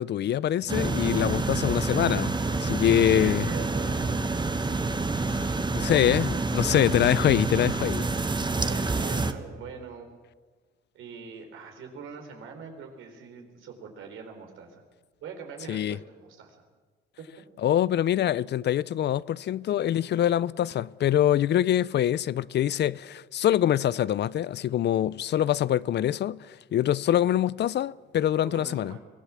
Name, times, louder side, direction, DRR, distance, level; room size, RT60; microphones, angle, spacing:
voice 1, 0.0-3.5 5.3-8.1 15.7-16.0 17.6-29.0, left 11 dB, 60° left, 0.5 m, -24 dB
sound 1, 0.7-9.3, right 3 dB, 25° right, 1.3 m, -28 dB
voice 2, 3.0-4.3 5.8-6.0 8.6-10.1 10.9-14.8 15.2-16.7 28.4-29.0, right 5 dB, 85° right, 4.1 m, -42 dB
23.5 x 16.5 x 7.4 m
cardioid pair, 90°, 20 cm